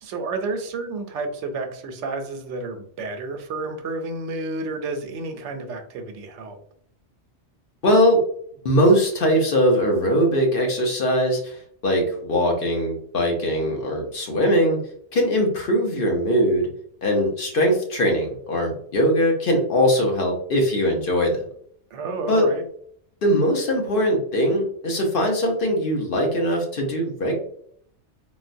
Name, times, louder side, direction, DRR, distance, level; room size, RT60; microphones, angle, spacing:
voice 1, 0.0-6.6 21.9-22.6, right 3 dB, 90° right, 6 dB, 0.9 m, -30 dB
voice 2, 7.8-8.2 8.6-14.8 15.1-16.7 17.0-21.4 22.3-22.5 23.2-27.4, equal, 55° left, 1 dB, 0.9 m, -21 dB
3.8 x 2.1 x 2.5 m, 0.63 s
omnidirectional pair, 1.2 m